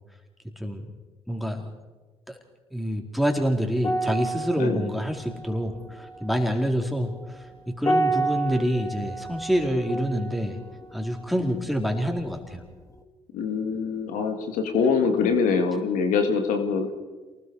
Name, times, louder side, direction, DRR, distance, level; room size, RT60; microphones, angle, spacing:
voice 1, 1.3-1.7 2.3-2.4 2.7-7.1 7.7-10.6 10.9-12.6, equal, ahead, 3 dB, 4.2 m, -26 dB
sound 1, 3.8-12.5 12.8-13.0, right 2 dB, 25° left, 2.2 m, -31 dB
voice 2, 13.3-16.9, left 5 dB, 75° left, 6 dB, 2.2 m, -24 dB
28.5 x 20.0 x 4.8 m, 1.3 s
hypercardioid pair, 55°, 14 cm